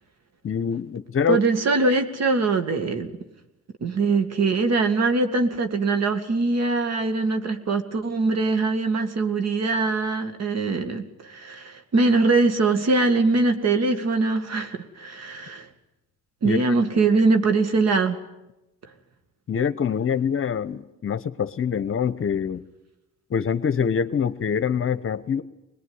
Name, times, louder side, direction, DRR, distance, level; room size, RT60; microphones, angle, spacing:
voice 1, 0.4-1.4 16.4-16.6 19.5-22.6 23.3-25.4, left 7 dB, 45° left, 14 dB, 1.0 m, -25 dB
voice 2, 1.3-3.1 3.8-15.7 16.4-18.2, right 3 dB, 60° right, 8 dB, 2.2 m, -22 dB
22.0 x 20.5 x 9.7 m, 0.95 s
cardioid pair, 90°, 30 cm